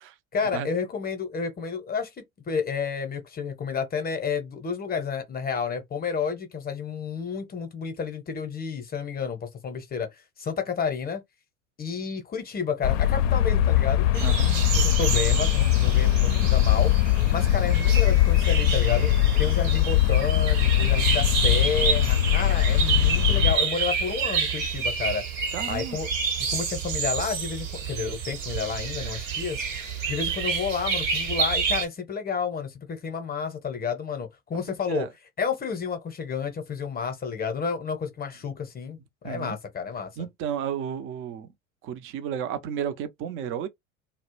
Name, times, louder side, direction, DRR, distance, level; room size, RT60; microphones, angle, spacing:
voice 1, 0.3-11.2 11.8-16.9 17.3-19.1 19.4-25.3 25.7-26.1 26.5-29.6 30.1-35.1 35.4-39.0 39.2-40.1, left 6 dB, 25° left, 0.7 m, -31 dB
sound 1, 12.8-23.6, left 13 dB, 65° left, 0.5 m, -21 dB
sound 2, 14.1-31.8, right 6 dB, 70° right, 1.1 m, -29 dB
voice 2, 14.2-14.5 25.5-26.0 34.8-35.1 39.2-39.6 40.2-41.5 41.8-43.7, right 8 dB, 35° right, 0.4 m, -32 dB
2.2 x 2.0 x 3.0 m
hypercardioid pair, 75°, 40 cm